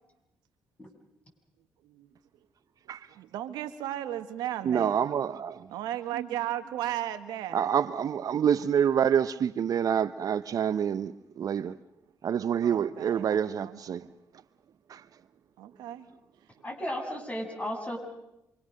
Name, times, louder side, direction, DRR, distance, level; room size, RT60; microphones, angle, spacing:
voice 1, 3.1-5.0 5.7-7.6 12.6-13.8 15.6-16.1, right 12 dB, 80° right, 1.4 m, -35 dB
voice 2, 4.6-5.7 7.5-11.8 12.2-14.1 14.9-15.0, right 8 dB, 60° right, 0.8 m, -27 dB
voice 3, 16.6-18.0, equal, 20° left, 7.6 m, -34 dB
27.0 x 24.0 x 6.6 m
supercardioid pair, 55°, 7 cm